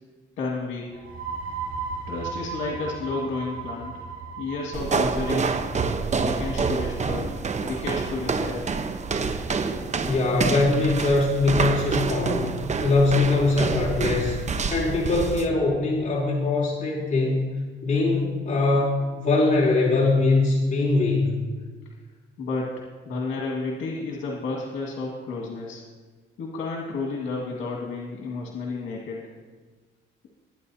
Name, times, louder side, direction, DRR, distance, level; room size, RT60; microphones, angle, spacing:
voice 1, 0.4-1.0 2.1-3.9 4.4-5.6 6.1-7.4 7.6-8.7 22.4-25.8 26.4-29.2, left 3 dB, 85° left, -2 dB, 1.9 m, -31 dB
sound 1, 0.9-8.4, right 5 dB, 90° right, 2.6 m, -37 dB
sound 2, 4.7-15.5, right 4 dB, 35° right, 0.9 m, -27 dB
voice 2, 10.0-12.5 12.8-14.4 14.7-17.4 17.8-21.4, left 3 dB, 40° left, -5 dB, 3.4 m, -22 dB
20.5 x 9.8 x 2.8 m, 1.4 s
cardioid pair, 90°, 20 cm